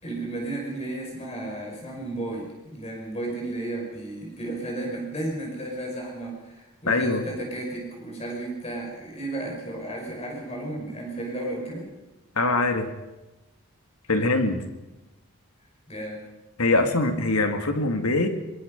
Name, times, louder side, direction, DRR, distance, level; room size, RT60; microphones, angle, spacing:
voice 1, 0.0-11.9 14.2-14.3 15.9-16.3 16.7-16.9, right 1 dB, 30° left, -1 dB, 5.7 m, -33 dB
voice 2, 6.9-7.2 12.4-12.9 14.1-14.6 16.6-18.3, left 2 dB, 85° left, 6 dB, 2.6 m, -23 dB
23.5 x 21.5 x 5.6 m, 1.1 s
head